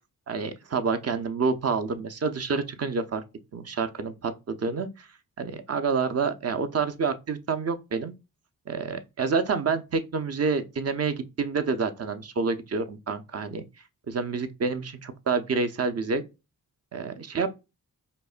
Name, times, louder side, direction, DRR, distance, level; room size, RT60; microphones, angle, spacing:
voice 1, 0.3-3.2 3.5-5.1 5.4-8.1 8.7-13.6 14.1-16.2 16.9-17.5, right 5 dB, 40° right, 0.6 m, -28 dB
5.2 x 2.1 x 2.4 m
cardioid pair, 70°, 37 cm